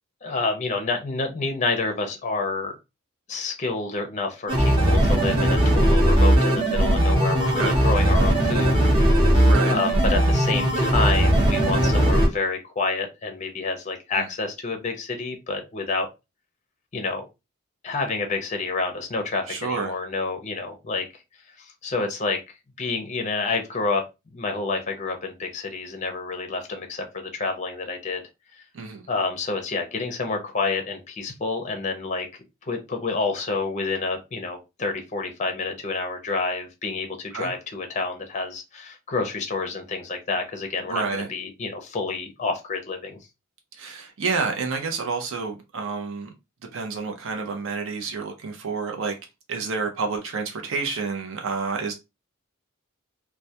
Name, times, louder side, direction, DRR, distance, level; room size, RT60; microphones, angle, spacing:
voice 1, 0.2-2.8 3.3-8.9 9.2-16.1 16.9-17.2 17.8-21.1 21.6-22.4 22.8-24.0 24.3-28.2 29.1-32.3 32.6-43.2, left 3 dB, 35° left, 0.5 m, -28 dB
sound 1, 4.5-12.3, right 1 dB, 25° right, 0.8 m, -19 dB
voice 2, 7.5-7.8 9.4-9.8 14.2-14.3 19.5-19.9 28.7-29.0 37.3-37.5 40.9-41.3 43.8-46.3 46.7-49.1 49.5-51.9, right 4 dB, 60° right, 0.5 m, -29 dB
2.2 x 2.1 x 2.7 m
head